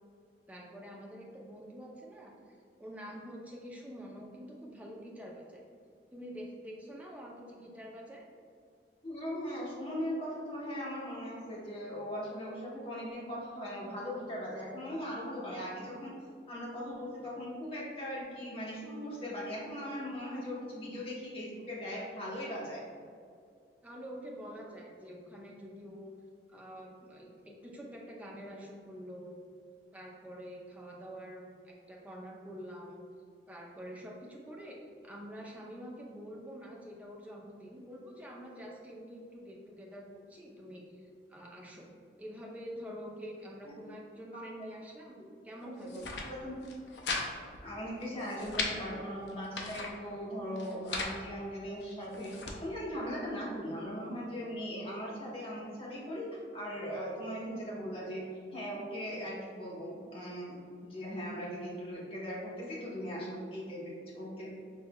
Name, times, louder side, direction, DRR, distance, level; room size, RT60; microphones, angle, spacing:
voice 1, 0.5-5.6 6.1-8.3 23.8-26.1 26.5-29.4 29.9-33.0 33.5-34.8 35.0-41.0 41.3-41.9 42.2-46.3, equal, 10° right, -2 dB, 0.5 m, -46 dB
voice 2, 9.0-16.2 16.5-22.8 43.6-43.7 44.3-44.5 45.6-45.7 46.3-46.6 47.6-56.3 56.5-58.2 58.5-64.5, equal, 30° left, -6 dB, 0.9 m, -39 dB
sound 1, 45.8-46.3 46.6-47.3 47.5-47.6 48.0-48.7 49.3-49.9 50.6-51.2 51.8-52.6, left 4 dB, 70° left, 0.5 m, -37 dB
5.4 x 3.2 x 2.2 m, 2.2 s
head